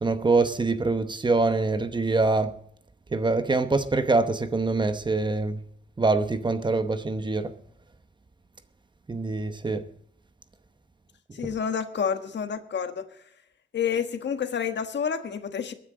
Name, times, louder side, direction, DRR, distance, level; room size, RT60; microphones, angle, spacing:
voice 1, 0.0-2.5 3.1-5.6 6.0-7.5 9.1-9.8, right 3 dB, 25° right, 0.9 m, -24 dB
voice 2, 11.3-13.0 13.7-15.7, left 7 dB, 65° left, 1.4 m, -29 dB
22.5 x 10.0 x 3.9 m
wide cardioid pair, 165°, 19 cm